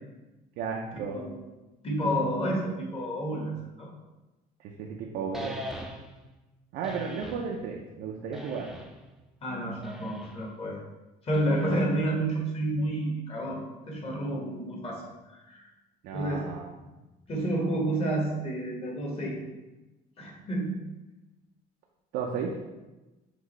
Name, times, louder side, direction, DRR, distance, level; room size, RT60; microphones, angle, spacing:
voice 1, 0.6-1.2 4.6-5.6 6.7-8.8 11.7-11.8 16.0-16.8 22.1-22.5, right 6 dB, 85° right, 0 dB, 0.5 m, -34 dB
voice 2, 1.8-3.5 3.8-3.9 9.4-10.8 11.2-15.7 16.1-16.5 17.3-19.4 20.2-20.8, right 1 dB, 35° left, -2 dB, 1.3 m, -30 dB
sound 1, 5.3-6.2 6.8-7.5 8.3-9.1 9.8-10.4 11.3-12.0, equal, ahead, 0.4 m, -41 dB
5.9 x 2.6 x 3.1 m, 1.1 s
cardioid pair, 110°, 17 cm